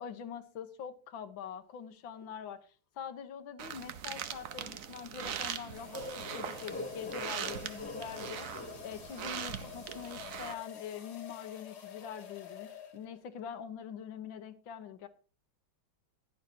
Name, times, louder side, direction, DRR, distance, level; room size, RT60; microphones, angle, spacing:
voice 1, 0.0-2.7 2.9-8.5 8.8-15.1, left 8 dB, 75° left, 1.8 m, -44 dB
sound 1, 2.1-2.4 4.1-13.3, left 9 dB, 55° left, 1.9 m, -50 dB
sound 2, 3.6-10.5, right 8 dB, 60° right, 0.9 m, -41 dB
sound 3, 5.9-9.6, left 1 dB, 10° left, 0.7 m, -44 dB
15.5 x 11.0 x 2.8 m
omnidirectional pair, 2.2 m